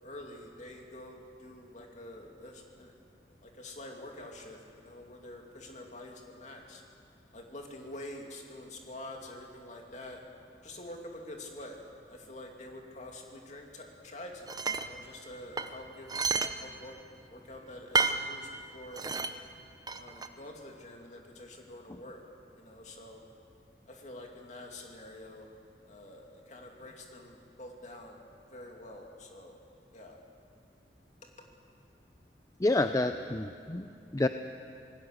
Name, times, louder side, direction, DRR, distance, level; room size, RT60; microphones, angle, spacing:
voice 1, 0.0-2.9 3.4-6.8 7.3-10.2 10.6-11.8 12.1-16.2 16.6-17.0 17.3-19.0 19.9-22.2 22.6-23.2 23.9-25.5 25.9-28.2 28.5-29.6 29.9-30.2, left 1 dB, 40° left, 1 dB, 2.7 m, -47 dB
sound 1, 14.5-14.9 15.6-16.5 16.9-17.0 17.9-18.2 18.9-19.3 19.9-20.3, right 4 dB, 20° right, 0.8 m, -30 dB
voice 2, 32.6-33.9 34.1-34.3, left 2 dB, 20° left, 8 dB, 0.5 m, -28 dB
26.5 x 19.0 x 6.6 m, 2.5 s
head